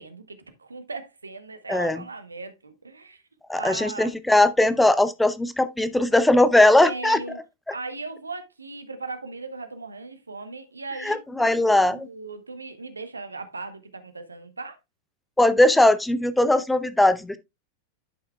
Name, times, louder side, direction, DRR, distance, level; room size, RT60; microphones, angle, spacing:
voice 1, 0.0-3.2 3.5-4.2 6.8-7.4 7.7-14.8, right 3 dB, 80° right, 0.9 m, -37 dB
voice 2, 3.5-7.2 11.0-12.1 15.4-17.4, left 1 dB, 5° left, 0.6 m, -19 dB
11.0 x 5.7 x 2.2 m
figure-of-eight pair, 90°, 0 cm